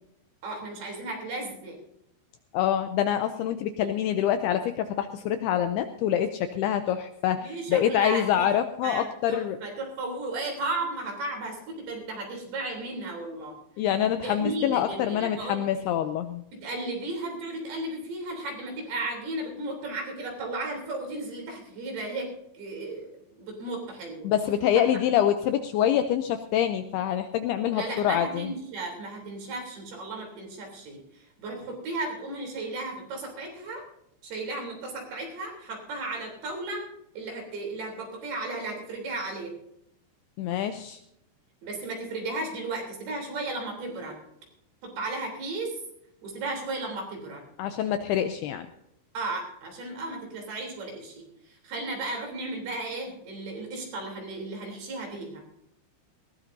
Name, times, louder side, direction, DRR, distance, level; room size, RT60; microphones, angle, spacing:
voice 1, 0.4-1.8 7.4-8.5 8.8-13.6 14.2-15.6 16.5-22.3 22.5-24.3 24.8-24.9 27.7-33.8 34.2-36.8 37.2-39.5 41.6-44.2 44.8-45.8 46.2-47.4 49.1-55.4, right 2 dB, 60° right, 1 dB, 5.2 m, -35 dB
voice 2, 2.5-9.6 13.8-16.4 24.2-28.5 40.4-41.0 47.6-48.7, left 10 dB, 85° left, 8 dB, 2.3 m, -26 dB
19.5 x 17.0 x 2.7 m, 0.81 s
omnidirectional pair, 5.2 m